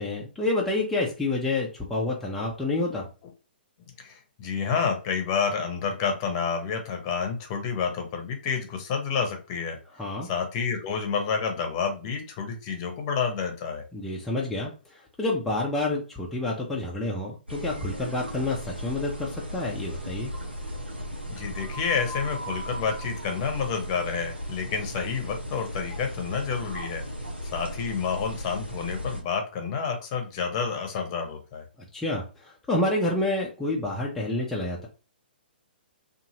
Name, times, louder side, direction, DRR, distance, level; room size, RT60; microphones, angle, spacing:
voice 1, 0.0-3.0 10.0-10.3 13.9-14.7 15.2-20.3 31.9-34.9, left 2 dB, 5° left, -3 dB, 0.6 m, -28 dB
voice 2, 4.0-9.8 10.2-13.8 21.3-27.0 27.5-31.6, left 6 dB, 30° left, 4 dB, 0.9 m, -29 dB
sound 1, 17.5-29.2, equal, 85° right, 0.9 m, -36 dB
2.7 x 2.5 x 2.8 m, 0.34 s
figure-of-eight pair, 120°, 6 cm